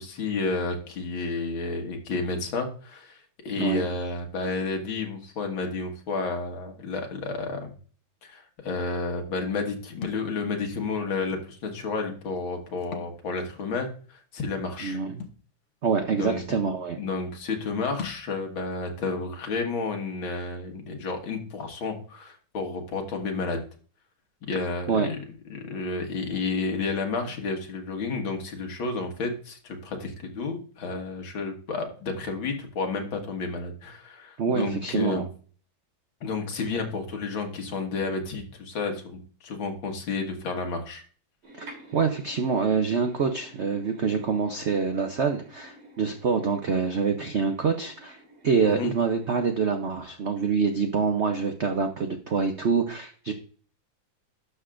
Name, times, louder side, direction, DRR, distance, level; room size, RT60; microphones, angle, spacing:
voice 1, 0.0-7.7 8.2-15.0 16.1-16.4 17.0-23.6 24.4-25.2 25.5-35.2 36.2-41.0 48.6-48.9, left 3 dB, 80° left, 3 dB, 2.3 m, -31 dB
voice 2, 3.6-3.9 14.8-15.2 15.8-17.0 24.9-25.1 34.4-35.2 41.6-41.7 41.9-53.3, right 5 dB, 65° right, 6 dB, 0.6 m, -26 dB
Thump thud, 10.0-10.3 11.3-11.4 12.8-13.1 13.6-13.7 15.2-15.4 16.2-16.3 16.5-16.7 18.0-18.3, left 6 dB, 55° left, 0.8 m, -38 dB
sound 1, 41.4-49.6, right 1 dB, 90° right, 4.0 m, -50 dB
11.5 x 6.8 x 2.5 m, 0.41 s
omnidirectional pair, 2.2 m